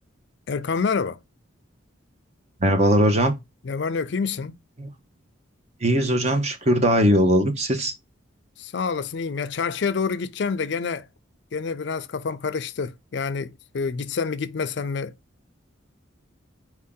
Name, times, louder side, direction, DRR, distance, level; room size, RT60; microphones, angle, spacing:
voice 1, 0.5-1.2 3.6-4.6 8.6-11.1 11.5-15.1, left 5 dB, 60° left, 0.4 m, -27 dB
voice 2, 2.6-3.3 4.8-4.9 5.8-7.9, equal, 35° right, 0.9 m, -20 dB
4.6 x 2.7 x 3.6 m
head